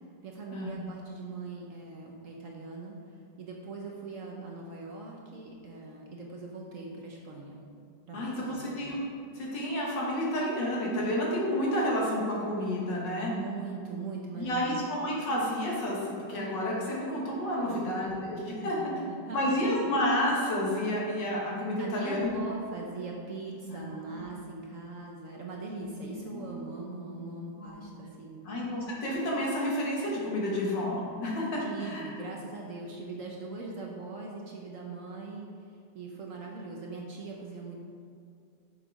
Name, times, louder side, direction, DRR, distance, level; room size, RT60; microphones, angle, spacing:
voice 1, 0.2-3.0 3.4-7.6 8.1-8.7 13.3-14.8 17.6-17.9 18.6-19.7 21.8-28.4 31.6-35.5 35.9-37.8, right 3 dB, 55° right, -1 dB, 1.0 m, -41 dB
voice 2, 8.1-9.0 9.3-13.3 14.4-18.8 19.3-22.3 23.7-23.8 24.1-24.3 25.7-25.9 26.3-26.5 27.6-27.8 28.5-32.1, left 1 dB, 75° left, -4 dB, 2.3 m, -30 dB
7.0 x 5.8 x 4.7 m, 2.5 s
omnidirectional pair, 1.9 m